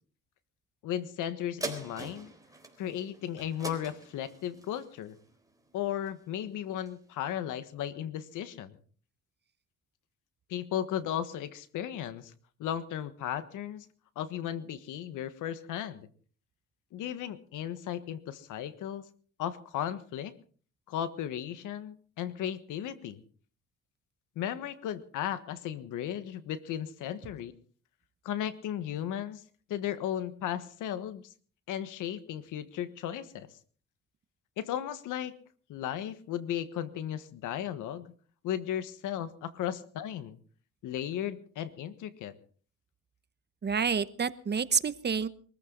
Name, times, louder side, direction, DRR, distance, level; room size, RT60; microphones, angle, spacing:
voice 1, 0.8-2.3 2.8-5.2 5.7-8.8 10.5-12.3 12.6-13.9 14.1-16.1 16.9-19.0 19.4-20.3 20.9-23.2 24.3-27.5 28.2-29.4 29.7-31.3 31.7-33.5 34.6-35.3 35.7-38.1 38.4-40.4 40.8-42.3, left 10 dB, 90° left, 12 dB, 1.5 m, -35 dB
sound 1, 1.6-6.4 6.9-7.0, right 2 dB, 10° right, 3.9 m, -43 dB
voice 2, 43.6-45.3, right 6 dB, 35° right, 15 dB, 1.0 m, -28 dB
23.5 x 14.5 x 4.0 m, 0.43 s
cardioid pair, 90°, 30 cm